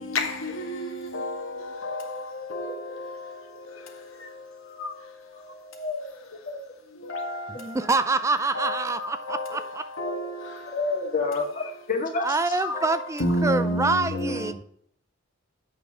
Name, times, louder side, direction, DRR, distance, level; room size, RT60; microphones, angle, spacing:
voice 1, 0.0-6.5 7.0-7.8 8.5-10.8 12.6-14.5, left 1 dB, 85° left, 1.7 m, -32 dB
voice 2, 2.7-3.0 5.5-5.6 6.5-6.6 9.5-9.6 10.7-12.6, left 3 dB, 40° left, 1.9 m, -29 dB
voice 3, 7.5-9.8 12.2-14.5, right 3 dB, 15° right, 0.4 m, -26 dB
7.6 x 6.0 x 4.9 m
head